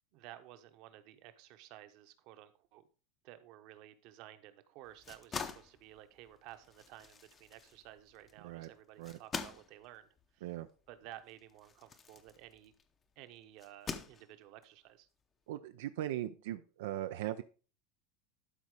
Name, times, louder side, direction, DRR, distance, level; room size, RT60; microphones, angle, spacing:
voice 1, 0.1-2.8 3.2-10.1 10.3-10.5 10.9-12.7 13.2-15.1, right 13 dB, 50° right, 10 dB, 1.0 m, -54 dB
sound 1, 4.8-12.9 13.6-14.6, left 5 dB, 20° left, 0.7 m, -46 dB
voice 2, 15.5-17.4, right 13 dB, 85° right, 9 dB, 0.5 m, -39 dB
12.0 x 4.2 x 4.9 m, 0.37 s
supercardioid pair, 160°, 0 cm